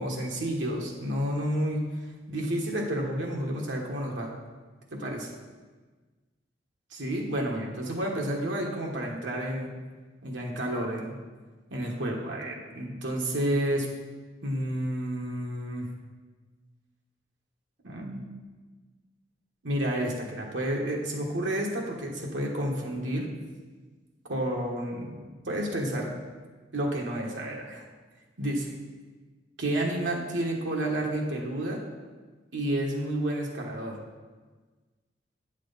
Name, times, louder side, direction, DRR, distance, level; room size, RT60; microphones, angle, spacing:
voice 1, 0.0-1.8 2.3-4.3 4.9-5.3 6.9-9.7 10.2-11.1 11.7-13.9 14.4-15.9 17.8-18.2 19.6-23.3 24.3-26.1 26.7-27.8 28.4-28.7 29.6-31.8 32.5-34.0, right 1 dB, 90° right, -1 dB, 1.5 m, -30 dB
9.2 x 6.2 x 4.1 m, 1.4 s
head